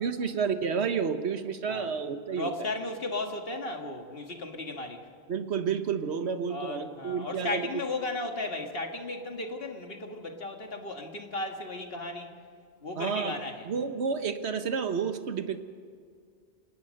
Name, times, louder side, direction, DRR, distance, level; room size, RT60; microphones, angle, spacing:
voice 1, 0.0-2.5 5.3-7.7 13.0-13.4 13.7-15.6, right 6 dB, 70° right, 9 dB, 1.4 m, -30 dB
voice 2, 2.3-5.1 6.5-12.3 12.8-13.7, left 2 dB, 55° left, 4 dB, 2.1 m, -35 dB
28.0 x 19.0 x 6.5 m, 2.1 s
omnidirectional pair, 1.1 m